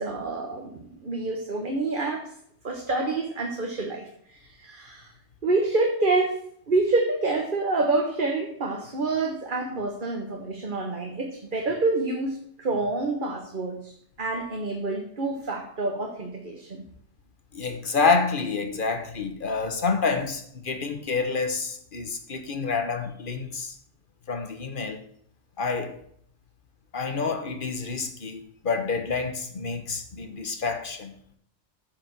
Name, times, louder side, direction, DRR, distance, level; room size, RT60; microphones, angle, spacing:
voice 1, 0.0-2.3 2.6-5.1 5.4-6.4 6.7-13.9 14.2-16.8, right 3 dB, 50° right, 1.3 m, -27 dB
voice 2, 17.5-23.7 24.3-25.0 25.6-26.0 26.9-31.1, left 4 dB, 50° left, 1.3 m, -28 dB
8.8 x 5.0 x 7.4 m
omnidirectional pair, 1.1 m